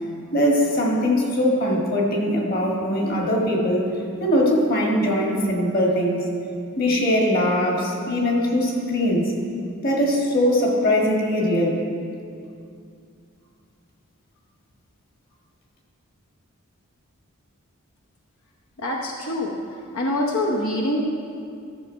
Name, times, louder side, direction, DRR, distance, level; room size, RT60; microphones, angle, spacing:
voice 1, 0.3-3.9 4.2-6.3 6.8-9.3 9.8-11.8, equal, 45° left, -1 dB, 1.6 m, -21 dB
voice 2, 18.8-19.6 19.9-21.0, left 1 dB, 80° left, -2 dB, 0.9 m, -24 dB
13.0 x 7.1 x 4.5 m, 2.4 s
head